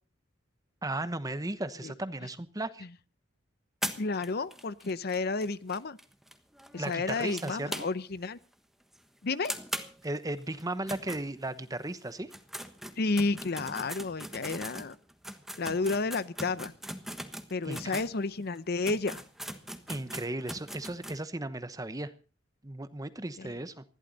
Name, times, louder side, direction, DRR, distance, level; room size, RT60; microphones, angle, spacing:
voice 1, 0.8-2.9 6.8-7.7 10.0-12.3 17.6-18.0 19.9-22.1 22.6-23.8, right 2 dB, 20° right, 12 dB, 1.0 m, -36 dB
sound 1, 3.8-8.2 8.5-8.6 8.9-9.0 9.4-11.8 12.2-18.1 18.5-18.6 18.8-21.2, equal, ahead, 1.3 m, -41 dB
voice 2, 4.0-6.0 6.7-8.4 9.2-9.5 13.0-14.9 15.6-16.7 17.5-19.2 23.4-23.5, left 3 dB, 50° left, 16 dB, 0.7 m, -31 dB
20.5 x 15.0 x 4.1 m, 0.36 s
head